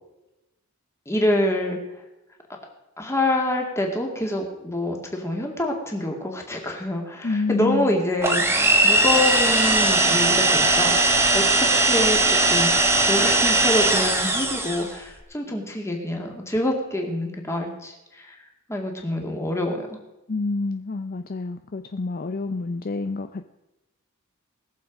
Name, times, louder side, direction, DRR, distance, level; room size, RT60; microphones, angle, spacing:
voice 1, 1.1-1.8 3.0-11.0 11.3-18.4 18.7-20.0, left 1 dB, 15° left, 1 dB, 2.1 m, -26 dB
voice 2, 7.2-7.9 20.3-23.5, left 3 dB, 40° left, 8 dB, 0.5 m, -28 dB
sound 1, 8.2-14.9, right 2 dB, 10° right, 1.3 m, -19 dB
20.0 x 7.2 x 5.1 m, 0.97 s
head